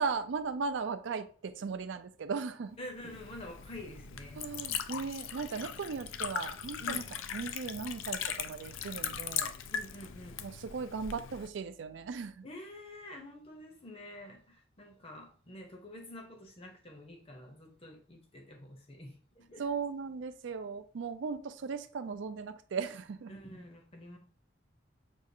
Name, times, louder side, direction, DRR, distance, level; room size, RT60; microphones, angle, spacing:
voice 1, 0.0-2.8 4.3-7.0 7.3-9.5 10.4-12.5 19.6-23.3, right 5 dB, 70° right, 0.4 m, -37 dB
voice 2, 2.8-4.7 6.8-7.1 9.7-10.4 12.4-19.6 23.3-24.2, left 1 dB, 30° left, 0.7 m, -48 dB
Liquid, 2.9-11.5, left 8 dB, 85° left, 0.4 m, -39 dB
6.2 x 2.4 x 2.7 m
head